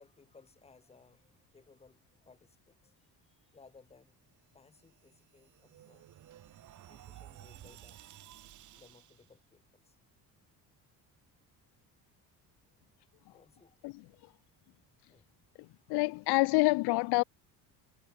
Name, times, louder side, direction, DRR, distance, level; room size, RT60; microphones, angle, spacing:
voice 1, 0.0-4.3 4.5-6.1 6.8-8.0 8.7-10.0 13.3-13.8 15.1-15.3, left 4 dB, 15° left, 4.4 m, -62 dB
sound 1, 4.8-9.3, right 13 dB, 50° right, 4.9 m, -54 dB
voice 2, 15.6-17.2, left 24 dB, 80° left, 0.5 m, -27 dB
cardioid pair, 175°, 38 cm